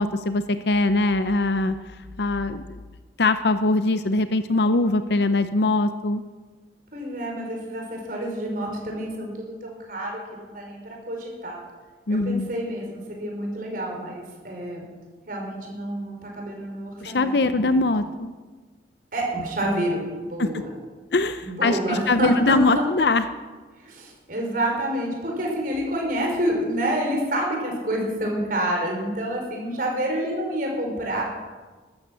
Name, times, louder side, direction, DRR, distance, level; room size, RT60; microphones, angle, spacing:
voice 1, 0.0-2.8 3.2-6.2 12.1-12.5 17.0-18.3 20.4-20.5 21.1-23.2, left 2 dB, 65° left, 11 dB, 0.6 m, -22 dB
voice 2, 6.9-11.6 12.1-14.9 15.3-17.8 19.1-20.7 21.4-22.8 23.8-31.2, right 1 dB, 50° right, 0 dB, 4.9 m, -28 dB
13.0 x 13.0 x 7.6 m, 1.3 s
head